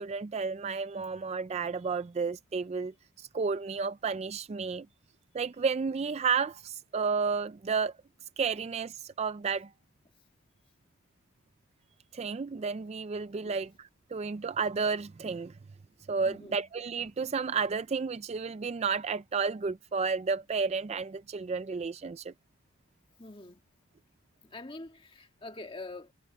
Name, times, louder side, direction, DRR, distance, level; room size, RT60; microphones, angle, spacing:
voice 1, 0.0-4.9 5.3-7.9 8.4-9.7 12.1-15.5 16.1-22.3, right 5 dB, 30° right, 0.3 m, -32 dB
voice 2, 16.2-16.7 23.2-23.6 24.4-26.1, left 2 dB, 25° left, 1.7 m, -45 dB
head